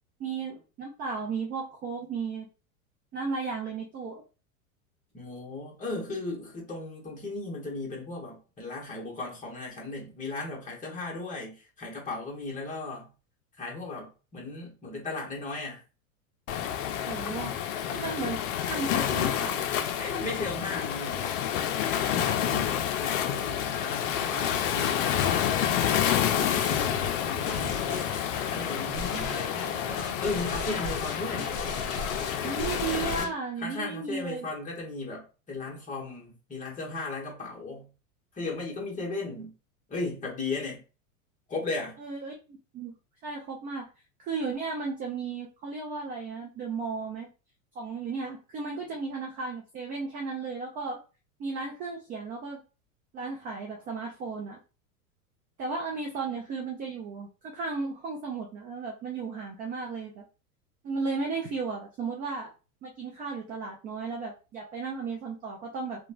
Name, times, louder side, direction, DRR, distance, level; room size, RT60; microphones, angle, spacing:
voice 1, 0.2-2.5 3.1-4.2 17.1-17.5 17.9-19.6 32.4-34.5 42.0-42.9 43.2-43.9 44.2-47.3 47.8-51.0 51.4-52.6 53.1-54.6 55.6-60.3 60.8-62.5 62.8-66.1, right 4 dB, 20° right, 0.3 m, -34 dB
voice 2, 5.1-13.1 13.6-15.8 20.0-21.4 22.1-27.9 28.5-31.5 33.6-37.9 38.3-39.5 39.9-40.8 41.5-42.0, left 3 dB, 20° left, 1.1 m, -36 dB
Waves surf, 16.5-33.2, left 10 dB, 65° left, 0.5 m, -29 dB
sound 1, 26.4-33.3, left 4 dB, 35° left, 0.8 m, -36 dB
2.9 x 2.3 x 2.4 m
hypercardioid pair, 115°, 42 cm